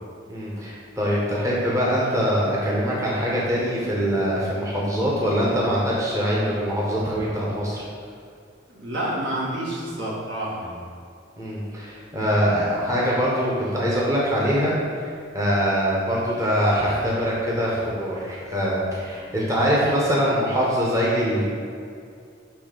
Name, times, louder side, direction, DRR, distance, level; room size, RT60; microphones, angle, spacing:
voice 1, 0.3-7.8 11.4-21.4, equal, 15° right, -6 dB, 0.9 m, -23 dB
voice 2, 8.7-10.8, right 1 dB, 65° right, -5 dB, 1.5 m, -29 dB
7.0 x 3.2 x 5.2 m, 2.3 s
head